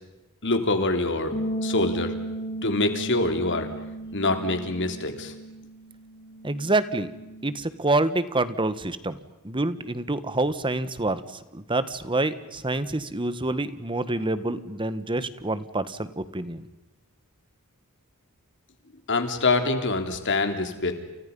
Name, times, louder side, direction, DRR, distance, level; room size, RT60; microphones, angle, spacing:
voice 1, 0.4-2.1 2.6-3.7 4.1-5.3 19.1-20.9, left 2 dB, 55° left, 6 dB, 3.5 m, -25 dB
sound 1, 1.3-7.6, right 1 dB, 40° left, 4.5 m, -35 dB
voice 2, 6.4-7.1 7.4-9.2 9.4-11.2 11.5-16.7, right 2 dB, 25° right, 13 dB, 1.5 m, -27 dB
30.0 x 30.0 x 5.5 m, 1.0 s
head